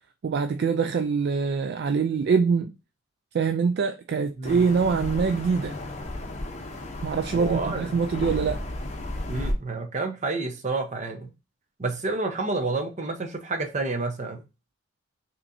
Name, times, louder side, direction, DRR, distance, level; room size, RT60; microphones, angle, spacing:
voice 1, 0.2-2.8 3.3-5.8 7.0-8.6, right 5 dB, 55° right, 0.3 m, -24 dB
sound 1, 4.4-9.5, left 1 dB, 35° left, 0.7 m, -33 dB
voice 2, 7.3-7.8 9.3-11.3 11.8-14.4, right 3 dB, 35° right, 0.8 m, -29 dB
5.9 x 3.0 x 2.6 m
head